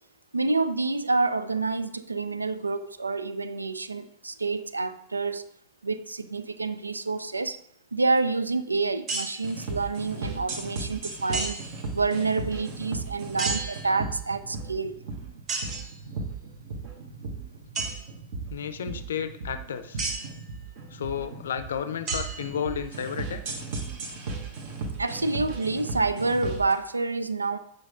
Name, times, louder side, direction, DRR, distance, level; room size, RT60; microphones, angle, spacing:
voice 1, 0.3-5.4 5.8-7.6 7.9-11.6 11.9-15.0 25.0-27.6, right 3 dB, 80° right, 14 dB, 0.4 m, -28 dB
sound 1, 9.1-9.6 11.3-11.9 13.4-14.3 15.5-16.0 17.7-18.0 20.0-20.4 22.1-22.9, right 4 dB, 35° right, 1.4 m, -33 dB
sound 2, 9.4-26.7, right 3 dB, 50° right, 1.3 m, -36 dB
voice 2, 18.5-20.0 20.9-23.6, left 8 dB, 65° left, 11 dB, 0.5 m, -32 dB
8.0 x 5.2 x 3.6 m, 0.74 s
figure-of-eight pair, 90°, 0 cm